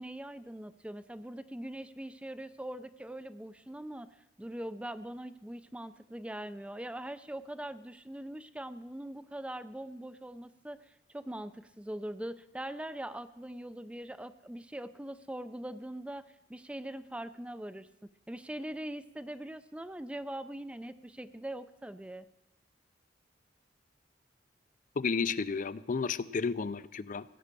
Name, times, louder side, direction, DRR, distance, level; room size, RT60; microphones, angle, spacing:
voice 1, 0.0-17.9 18.3-22.3, right 1 dB, 5° right, 13 dB, 0.4 m, -42 dB
voice 2, 25.0-27.2, left 5 dB, 45° left, 16 dB, 0.4 m, -32 dB
16.5 x 8.6 x 6.8 m, 0.88 s
head